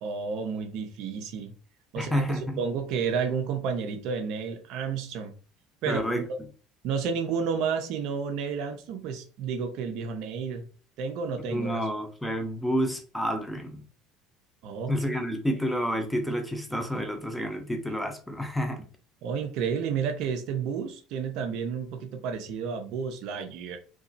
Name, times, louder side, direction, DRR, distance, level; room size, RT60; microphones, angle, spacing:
voice 1, 0.0-1.5 1.9-2.2 2.6-5.3 5.8-6.4 6.8-10.7 11.0-11.8 14.6-14.9 19.2-23.8, right 6 dB, 55° right, 0.5 m, -31 dB
voice 2, 2.0-2.6 5.9-6.2 11.5-13.8 14.9-18.8, equal, 5° left, 0.6 m, -29 dB
2.8 x 2.3 x 2.5 m
figure-of-eight pair, 60°, 0 cm